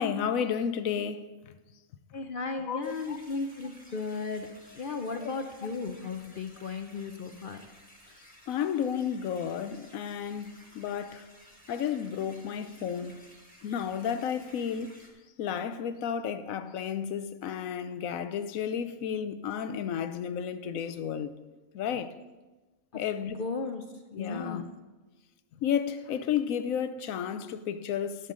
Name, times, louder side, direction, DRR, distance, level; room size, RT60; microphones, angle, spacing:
voice 1, 0.0-1.5 2.7-3.2 5.2-5.3 8.5-11.3 11.7-13.2 13.6-14.9 15.4-21.3 21.7-22.1 22.9-23.5 24.1-24.6 25.6-28.3, left 8 dB, 75° left, 1.0 m, -32 dB
voice 2, 2.1-4.5 4.7-7.6 22.9-23.0 23.4-23.8 24.1-24.6, left 4 dB, 55° left, 0.6 m, -35 dB
sound 1, 2.8-15.1, equal, 5° left, 1.7 m, -56 dB
18.0 x 6.8 x 3.7 m
omnidirectional pair, 1.5 m